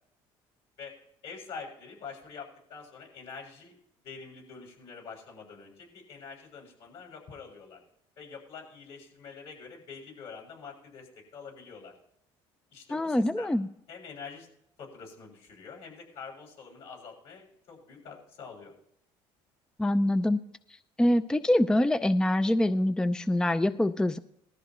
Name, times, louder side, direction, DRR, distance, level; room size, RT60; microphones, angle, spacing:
voice 1, 1.2-3.7 4.0-7.8 8.2-11.9 12.7-13.5 13.9-14.5 14.8-18.7, left 5 dB, 60° left, -1 dB, 6.3 m, -46 dB
voice 2, 12.9-13.7 19.8-20.4 21.0-24.2, left 1 dB, 5° left, 13 dB, 0.5 m, -25 dB
19.5 x 13.0 x 3.1 m, 0.74 s
cardioid pair, 110°, 11 cm